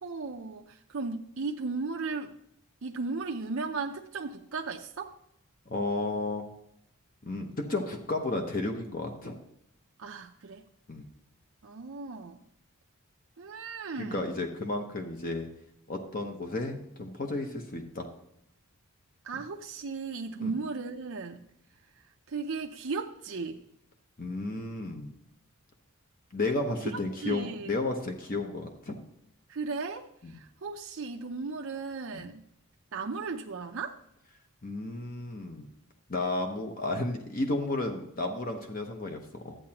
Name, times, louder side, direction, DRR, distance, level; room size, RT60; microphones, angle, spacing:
voice 1, 0.0-2.4 2.8-5.2 10.0-10.6 11.6-12.4 13.4-14.2 19.2-21.5 22.3-23.6 26.9-27.7 29.5-32.4 32.9-34.0, right 4 dB, 60° right, 2 dB, 0.6 m, -36 dB
voice 2, 5.7-6.5 7.2-9.3 10.9-11.1 14.0-15.5 15.9-18.1 20.4-20.5 24.2-25.1 26.3-29.0 30.2-30.4 32.1-32.3 34.6-35.7 36.1-39.6, left 2 dB, 40° left, 4 dB, 0.9 m, -33 dB
12.5 x 8.5 x 2.9 m, 0.78 s
head